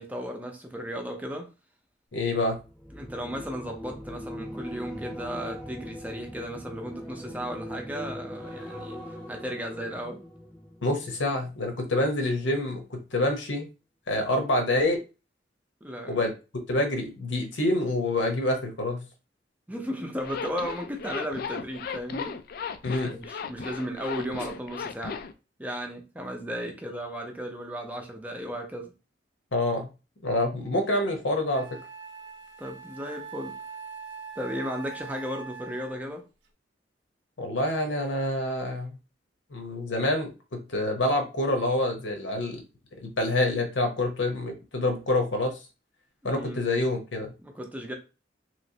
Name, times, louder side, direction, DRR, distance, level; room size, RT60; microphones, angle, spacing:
voice 1, 0.0-1.5 2.9-9.0 9.3-10.2 15.8-16.2 19.7-22.4 23.0-25.2 25.6-28.9 32.6-33.6 34.4-36.2 46.2-46.6 47.4-47.9, equal, 10° right, 0.5 m, -35 dB
voice 2, 2.1-2.6 10.8-13.7 14.1-15.0 16.1-16.3 16.7-19.0 22.8-23.2 29.5-29.9 30.2-31.7 37.4-38.9 39.5-42.6 43.0-45.6 46.2-47.3, left 1 dB, 85° left, 0.9 m, -27 dB
sound 1, 2.4-11.8 12.1-12.4, equal, 5° left, 0.9 m, -41 dB
Zipper (clothing), 20.2-25.3, left 6 dB, 55° left, 0.3 m, -36 dB
Wind instrument woodwind instrument, 30.9-31.0 31.5-36.2, right 5 dB, 80° right, 0.6 m, -42 dB
3.1 x 3.0 x 2.7 m
head